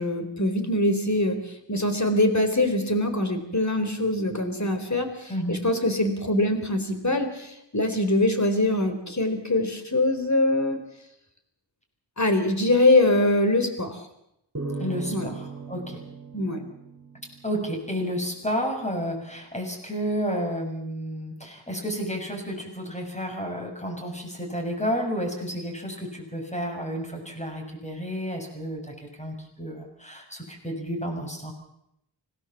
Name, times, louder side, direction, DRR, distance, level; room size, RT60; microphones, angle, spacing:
voice 1, 0.0-10.8 12.2-14.1 15.1-15.3 16.3-16.6, left 1 dB, 40° left, 8 dB, 3.8 m, -23 dB
voice 2, 5.3-5.7 14.8-16.0 17.4-31.5, equal, 15° left, 2 dB, 6.9 m, -31 dB
sound 1, 14.5-17.9, right 3 dB, 35° right, 4.7 m, -37 dB
25.5 x 18.0 x 7.3 m, 0.79 s
wide cardioid pair, 80°, 45 cm